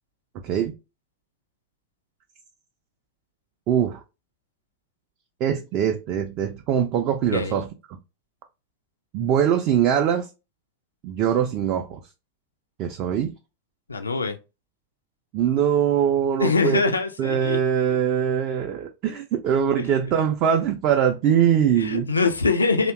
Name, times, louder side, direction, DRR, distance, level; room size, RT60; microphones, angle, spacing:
voice 1, 0.4-0.7 3.7-4.0 5.4-7.7 9.1-10.3 11.0-12.0 12.8-13.3 15.3-16.9 17.2-22.1, right 8 dB, 40° right, 0.3 m, -22 dB
voice 2, 7.3-7.6 13.9-14.4 16.4-17.6 21.8-22.9, left 4 dB, 75° left, 0.3 m, -23 dB
2.7 x 2.1 x 2.3 m
figure-of-eight pair, 90°, 0 cm